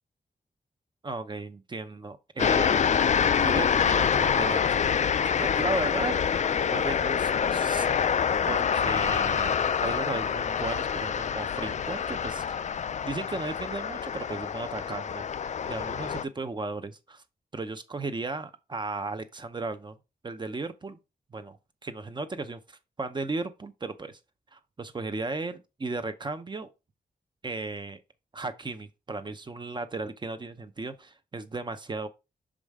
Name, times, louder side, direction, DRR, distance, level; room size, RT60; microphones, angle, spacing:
voice 1, 1.0-2.8 3.3-4.8 5.2-6.1 6.6-7.9 8.5-12.6 13.0-15.3 15.7-17.2 17.5-20.0 20.2-21.0 21.3-21.6 21.8-24.2 24.5-26.7 27.4-28.0 28.3-32.1, right 3 dB, 30° right, 0.6 m, -35 dB
sound 1, 2.4-16.2, left 7 dB, 45° left, 0.4 m, -26 dB
6.4 x 5.0 x 3.5 m
wide cardioid pair, 170°, 17 cm